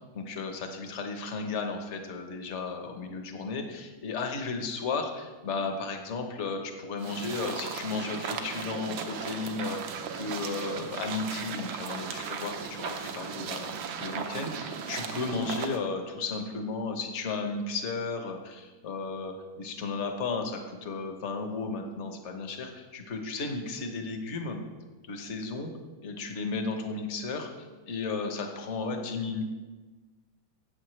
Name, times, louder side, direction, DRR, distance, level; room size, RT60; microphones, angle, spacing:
voice 1, 0.1-13.7 14.0-24.6 25.1-25.7 26.0-27.5 27.9-29.4, left 4 dB, 45° left, 4 dB, 1.1 m, -34 dB
sound 1, 7.0-15.8, right 6 dB, 80° right, 1.6 m, -36 dB
13.5 x 8.3 x 3.2 m, 1.2 s
omnidirectional pair, 2.2 m